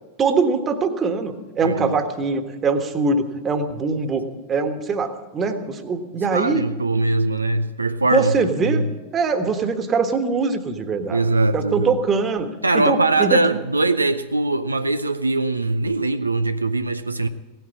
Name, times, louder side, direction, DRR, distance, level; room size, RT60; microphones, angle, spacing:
voice 1, 0.2-6.7 8.1-8.8 9.1-11.2 11.5-12.5 12.8-13.4, right 4 dB, 25° right, 8 dB, 1.5 m, -22 dB
voice 2, 1.6-2.0 6.3-8.3 8.7-8.8 11.1-11.9 12.6-17.3, right 2 dB, 80° right, 10 dB, 0.5 m, -21 dB
17.0 x 9.1 x 8.6 m, 1.2 s
figure-of-eight pair, 90°, 0 cm